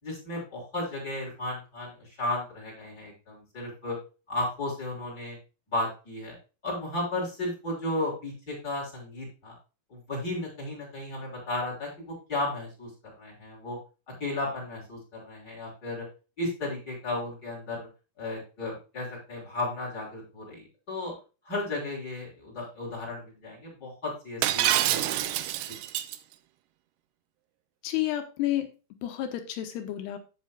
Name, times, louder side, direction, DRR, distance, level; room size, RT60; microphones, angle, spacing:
voice 1, 0.0-4.0 4.3-5.4 5.7-6.4 6.6-9.5 9.9-12.9 13.2-13.8 14.1-16.1 16.4-17.9 18.2-21.1 21.4-25.5, left 2 dB, 20° left, -2 dB, 6.2 m, -34 dB
Shatter, 24.4-26.2, right 13 dB, 80° right, 2.7 m, -26 dB
voice 2, 27.8-28.7 29.0-30.2, left 13 dB, 75° left, 7 dB, 2.9 m, -30 dB
16.5 x 5.8 x 2.3 m, 0.32 s
omnidirectional pair, 4.9 m